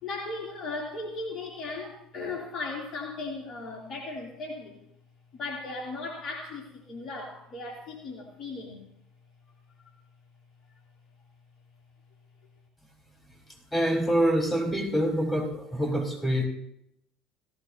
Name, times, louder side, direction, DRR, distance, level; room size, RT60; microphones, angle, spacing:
voice 1, 0.0-4.8 5.3-8.8, left 3 dB, 45° left, -1 dB, 3.0 m, -37 dB
voice 2, 13.7-16.5, equal, 15° left, 0 dB, 4.9 m, -26 dB
17.5 x 16.0 x 2.8 m, 0.75 s
hypercardioid pair, 70°, 0 cm